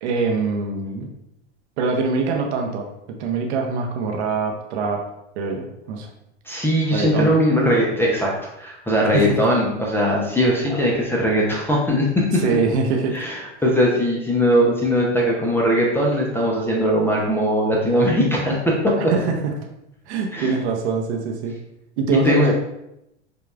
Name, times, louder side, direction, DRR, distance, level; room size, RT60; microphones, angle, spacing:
voice 1, 0.0-1.1 1.8-2.9 3.2-5.0 5.4-6.1 6.9-7.3 9.1-9.3 12.4-13.1 19.0-19.5 20.1-21.5 22.0-22.5, right 4 dB, 70° right, 2 dB, 0.7 m, -23 dB
voice 2, 6.5-12.4 13.1-19.1 20.3-20.5 22.2-22.5, equal, 5° left, -3 dB, 0.5 m, -20 dB
5.0 x 2.3 x 2.3 m, 0.84 s
hypercardioid pair, 110°, 35 cm